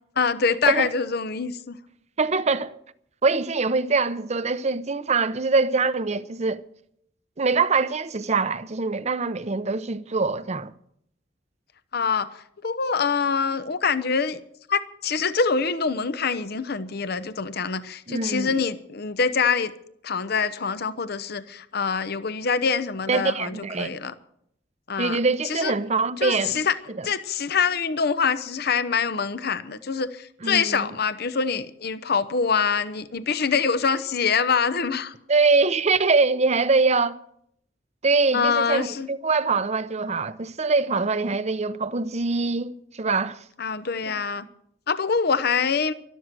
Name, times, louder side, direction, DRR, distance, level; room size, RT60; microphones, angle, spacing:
voice 1, 0.2-1.8 11.9-12.3 12.6-14.4 14.7-19.7 20.0-24.1 24.9-25.2 25.4-25.7 26.2-26.7 27.0-35.1 38.3-39.1 43.6-44.4 44.9-45.9, left 5 dB, 60° left, 0.8 m, -25 dB
voice 2, 2.2-2.7 3.2-6.6 7.4-10.7 18.1-18.6 23.1-23.9 25.0-26.6 27.0-27.1 30.4-30.9 35.3-37.2 38.0-43.4 44.1-44.2, right 4 dB, 40° right, 0.7 m, -23 dB
12.5 x 12.5 x 7.5 m
head